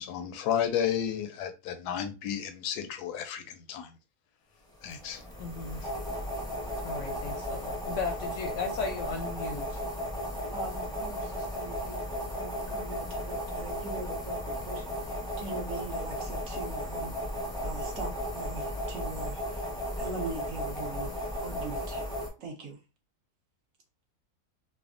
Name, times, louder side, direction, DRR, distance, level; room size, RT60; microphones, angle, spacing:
voice 1, 0.0-3.9 4.8-5.2, left 9 dB, 90° left, 1.1 m, -32 dB
sound 1, 4.9-22.3, equal, 5° left, 0.3 m, -35 dB
voice 2, 5.4-5.9 6.8-9.8, left 4 dB, 65° left, 0.8 m, -36 dB
voice 3, 10.5-17.2 17.6-21.1 21.4-22.8, right 3 dB, 65° right, 1.1 m, -42 dB
3.3 x 2.1 x 2.4 m
omnidirectional pair, 1.6 m